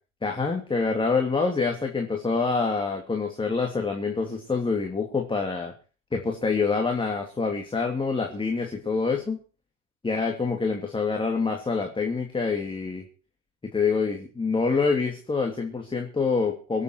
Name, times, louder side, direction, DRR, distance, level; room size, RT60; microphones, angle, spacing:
voice 1, 0.2-5.7 6.1-9.4 10.0-13.0 13.7-16.8, left 4 dB, 15° left, 1 dB, 2.8 m, -26 dB
24.5 x 8.3 x 4.6 m, 0.38 s
figure-of-eight pair, 75°, 40 cm